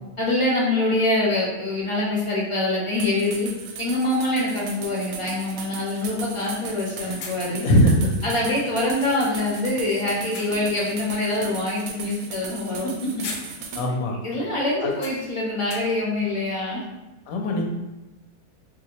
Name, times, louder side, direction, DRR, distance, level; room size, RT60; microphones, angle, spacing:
voice 1, 0.2-3.5 3.8-7.7 8.2-13.2 13.9-16.8, left 2 dB, 45° left, -5 dB, 0.4 m, -25 dB
sound 1, 2.4-2.5 4.6-4.7 5.0-5.1 5.6-5.7 6.0-7.7 8.7-9.9 10.2-10.8 11.3-11.5 12.7-12.9 13.2-14.0 14.2-14.3 14.9-16.2, left 3 dB, 90° left, 1.1 m, -41 dB
sound 2, 3.0-13.9, right 5 dB, 75° right, 1.0 m, -37 dB
voice 2, 7.5-8.1 13.8-14.1 14.8-14.9 17.3-17.7, equal, 70° left, 1 dB, 0.9 m, -20 dB
3.6 x 2.7 x 2.8 m, 1.0 s
omnidirectional pair, 1.6 m